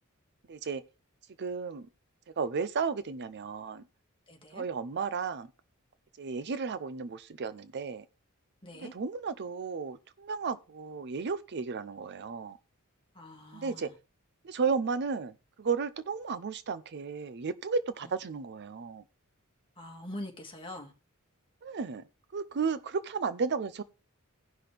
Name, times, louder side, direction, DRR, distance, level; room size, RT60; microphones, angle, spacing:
voice 1, 0.5-0.8 1.4-1.9 2.4-3.8 4.5-5.5 6.2-8.0 8.7-12.6 13.5-13.9 14.4-19.0 21.6-22.0 22.3-23.8, right 5 dB, 50° right, 0.5 m, -33 dB
voice 2, 4.3-4.6 8.6-8.9 13.1-13.9 19.8-20.9, left 1 dB, 25° left, 2.0 m, -43 dB
16.5 x 5.9 x 3.4 m
head